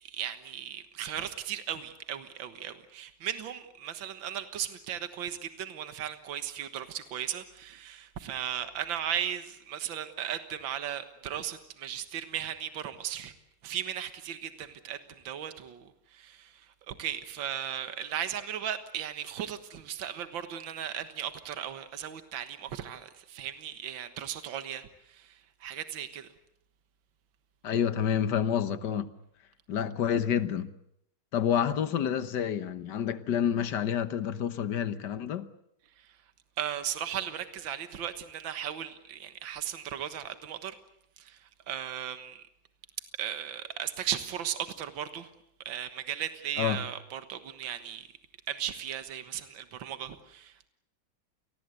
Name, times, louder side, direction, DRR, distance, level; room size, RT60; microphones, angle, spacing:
voice 1, 0.0-13.3 13.6-15.0 15.2-15.8 16.2-16.5 16.9-24.8 25.2-25.3 25.6-26.3 36.6-40.7 41.2-41.4 41.7-42.4 43.2-45.3 45.7-48.0 48.5-50.7, right 10 dB, 70° right, 2.1 m, -36 dB
voice 2, 27.6-29.1 29.7-30.7 31.3-35.5 46.6-46.8, left 8 dB, 60° left, 1.7 m, -28 dB
28.5 x 20.0 x 8.2 m
omnidirectional pair, 2.2 m